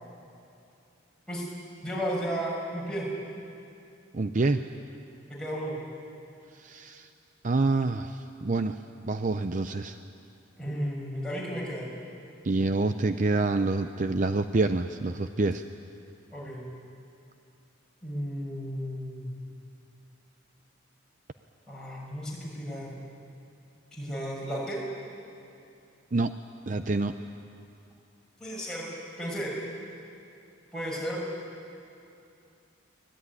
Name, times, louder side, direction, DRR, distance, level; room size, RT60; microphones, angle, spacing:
voice 1, 1.8-3.1 5.3-5.8 10.6-11.8 16.3-16.6 18.0-19.3 21.7-22.9 23.9-24.8 28.4-29.5 30.7-31.2, equal, 5° left, -5 dB, 6.5 m, -34 dB
voice 2, 4.1-4.6 6.5-7.1 7.4-8.8 9.0-10.0 12.4-15.6 26.1-26.3 26.7-27.1, right 3 dB, 40° right, 9 dB, 0.6 m, -27 dB
24.5 x 19.0 x 9.8 m, 2.6 s
head